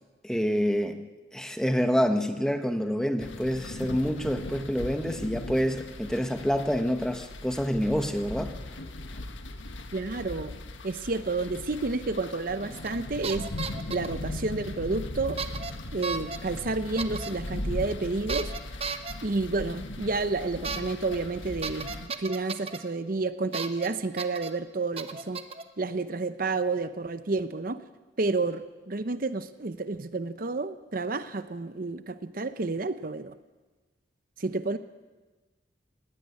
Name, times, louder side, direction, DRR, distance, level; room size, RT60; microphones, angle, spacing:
voice 1, 0.2-1.0 1.3-8.5, equal, 5° left, 7 dB, 1.1 m, -27 dB
sound 1, 3.2-22.1, left 1 dB, 85° left, 1.5 m, -38 dB
voice 2, 9.9-10.5 10.8-13.5 13.9-15.4 15.9-18.5 19.2-25.4 25.8-27.8 28.2-33.4 34.4-34.8, right 3 dB, 50° right, 12 dB, 0.7 m, -30 dB
sound 2, 12.8-13.0 13.2-14.1 15.4-15.7 16.0-16.4 17.0-17.3 18.3-19.1 20.6-20.8 21.1-21.2 21.6-22.8 23.5-23.9 24.2-24.5 25.0-25.6, right 4 dB, 30° right, 1.0 m, -34 dB
18.5 x 16.0 x 9.8 m, 1.2 s
head